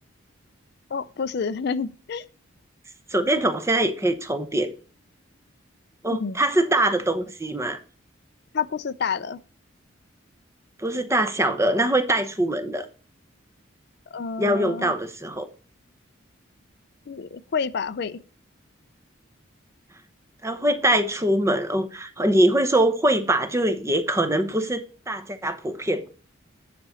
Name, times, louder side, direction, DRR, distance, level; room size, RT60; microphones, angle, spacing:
voice 1, 0.9-2.2 6.1-6.4 8.5-9.4 14.1-14.9 17.1-18.2, left 5 dB, 55° left, 0.4 m, -29 dB
voice 2, 3.1-4.7 6.0-7.8 10.8-12.9 14.4-15.5 20.4-26.1, right 1 dB, 15° right, 0.8 m, -23 dB
9.7 x 5.2 x 4.2 m
head